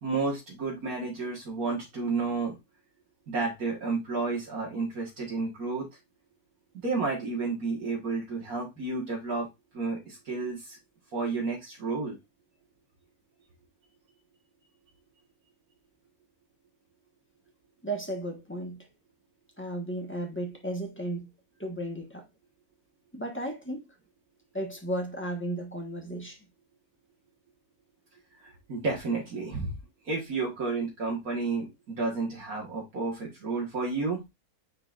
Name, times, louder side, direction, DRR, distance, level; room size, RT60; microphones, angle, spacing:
voice 1, 0.0-2.6 3.3-5.9 6.8-9.5 9.7-10.8 11.1-12.2 28.4-29.8 30.0-34.2, right 3 dB, 75° right, 2.0 m, -31 dB
voice 2, 17.8-18.9 19.6-21.3 21.6-22.2 23.1-23.9 24.5-26.4, right 1 dB, 10° left, 1.3 m, -34 dB
9.7 x 3.9 x 2.5 m
omnidirectional pair, 1.5 m